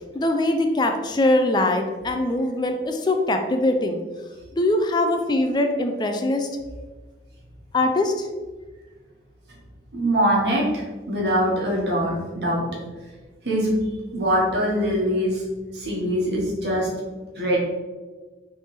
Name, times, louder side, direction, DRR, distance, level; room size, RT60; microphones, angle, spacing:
voice 1, 0.1-4.0 4.6-6.5 7.7-8.3, left 1 dB, 25° left, 5 dB, 0.3 m, -22 dB
voice 2, 9.9-12.6 13.4-13.8 14.1-15.4 15.7-16.9 17.4-17.6, equal, 75° right, -3 dB, 1.3 m, -23 dB
3.3 x 3.2 x 4.2 m, 1.3 s
head